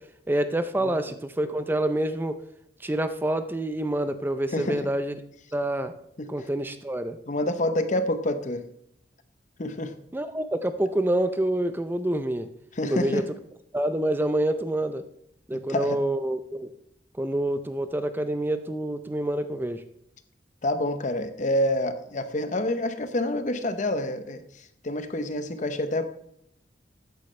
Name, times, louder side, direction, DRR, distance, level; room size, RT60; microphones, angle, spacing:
voice 1, 0.3-2.4 2.8-5.2 5.5-5.9 6.3-7.2 10.1-12.5 12.8-13.2 13.7-15.0 15.5-16.7 17.2-19.8, right 1 dB, 10° right, 10 dB, 0.4 m, -27 dB
voice 2, 7.3-8.6 9.6-9.9 12.8-13.2 15.5-16.0 20.6-24.4 24.8-26.1, left 1 dB, 45° left, 10 dB, 0.8 m, -27 dB
13.5 x 9.3 x 3.2 m, 0.72 s
head